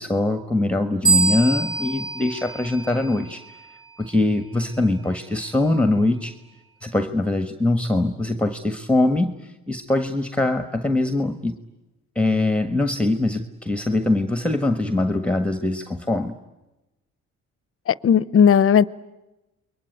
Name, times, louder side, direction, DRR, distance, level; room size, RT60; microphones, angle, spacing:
voice 1, 0.0-3.6 4.0-6.4 6.8-11.6 12.1-16.3, left 2 dB, 5° left, 1.5 m, -22 dB
sound 1, 1.0-3.5, right 3 dB, 15° right, 1.4 m, -24 dB
voice 2, 17.9-18.8, left 7 dB, 45° left, 0.9 m, -16 dB
29.0 x 22.5 x 9.2 m
cardioid pair, 90°, 30 cm